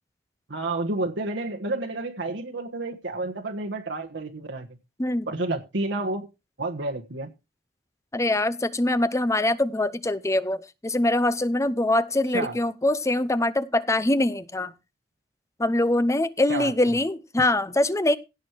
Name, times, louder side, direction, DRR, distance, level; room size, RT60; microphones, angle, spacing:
voice 1, 0.5-4.7 5.3-6.3 6.6-7.3 12.3-12.6 16.5-16.7, right 2 dB, 80° right, 1.4 m, -30 dB
voice 2, 8.1-14.7 15.6-18.2, left 1 dB, 15° left, 0.7 m, -23 dB
16.5 x 6.4 x 4.6 m
head